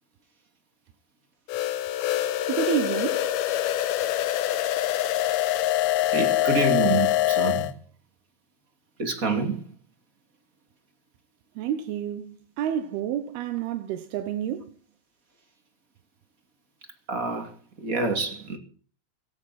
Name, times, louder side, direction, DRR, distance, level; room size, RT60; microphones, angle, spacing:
sound 1, 1.5-7.7, left 13 dB, 85° left, 2.9 m, -24 dB
voice 1, 2.5-3.3 6.3-6.4 11.6-14.8, right 10 dB, 90° right, 3.0 m, -29 dB
voice 2, 6.1-7.7 9.0-9.6 17.1-17.5 17.8-18.6, right 3 dB, 25° right, 2.4 m, -27 dB
16.5 x 16.5 x 4.3 m
omnidirectional pair, 4.3 m